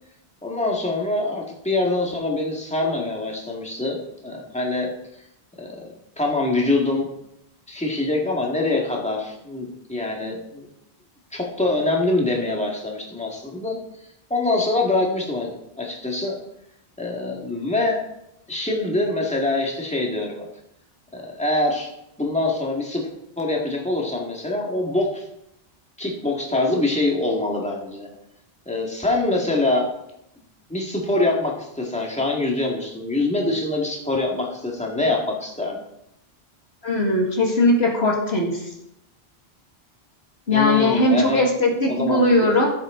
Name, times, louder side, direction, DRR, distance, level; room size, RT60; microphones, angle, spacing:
voice 1, 0.4-4.9 5.6-5.7 6.2-7.1 7.7-10.7 11.3-13.8 14.3-16.4 17.0-18.0 18.5-20.5 21.1-21.9 22.2-23.0 23.4-25.2 26.0-28.1 28.7-29.9 30.7-35.8 40.5-41.4 41.9-42.5, left 2 dB, 5° left, -2 dB, 2.2 m, -24 dB
voice 2, 36.8-38.6 40.5-42.7, left 2 dB, 70° left, 0 dB, 2.4 m, -19 dB
15.0 x 8.0 x 3.9 m, 0.80 s
omnidirectional pair, 1.1 m